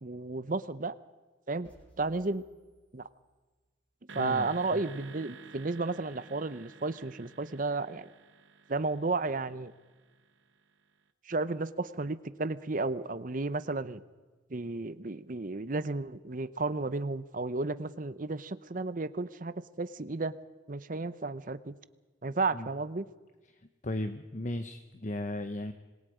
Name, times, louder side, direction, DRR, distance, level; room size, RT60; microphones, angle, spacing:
voice 1, 0.0-0.9 1.5-1.7 2.0-2.4 2.9-3.1 4.1-8.1 8.7-9.7 11.3-14.0 14.5-20.4 20.7-21.7 22.2-23.1, right 3 dB, 45° right, 14 dB, 0.8 m, -33 dB
sound 1, 1.6-3.7, right 1 dB, 10° left, 6.7 m, -62 dB
voice 2, 4.1-4.8 22.5-22.7 23.5-25.7, left 1 dB, 40° left, 8 dB, 1.0 m, -36 dB
sound 2, 4.1-10.5, right 4 dB, 85° right, 1.3 m, -52 dB
26.5 x 21.5 x 5.1 m, 1.3 s
head